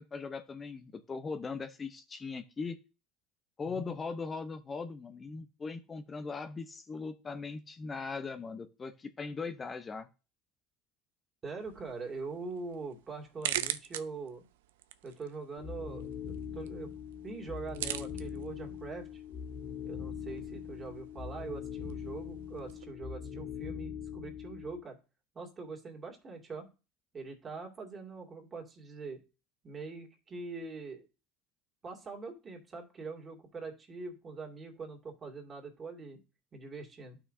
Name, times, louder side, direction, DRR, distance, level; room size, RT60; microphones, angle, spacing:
voice 1, 0.0-2.8 3.6-10.1, left 4 dB, 30° left, 7 dB, 0.9 m, -39 dB
voice 2, 3.6-4.0 11.4-14.5 15.0-16.9 17.2-19.2 19.8-25.0 25.3-26.7 27.1-29.2 29.6-31.1 31.8-36.2 36.5-37.2, right 4 dB, 30° right, 2 dB, 2.6 m, -43 dB
sound 1, 11.6-22.8, right 12 dB, 80° right, 0.5 m, -43 dB
sound 2, 15.6-24.8, left 8 dB, 60° left, 3.2 m, -42 dB
12.0 x 5.8 x 2.8 m, 0.32 s
hypercardioid pair, 75°, 0 cm